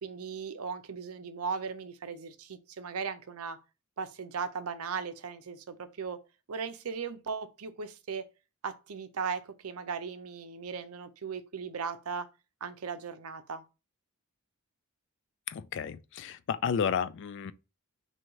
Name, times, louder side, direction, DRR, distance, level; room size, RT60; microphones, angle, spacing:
voice 1, 0.0-3.6 4.0-6.2 6.5-8.2 8.6-12.3 12.6-13.6, right 5 dB, 70° right, 0.6 m, -37 dB
voice 2, 15.5-17.5, left 7 dB, 55° left, 0.3 m, -32 dB
6.2 x 2.7 x 3.1 m
head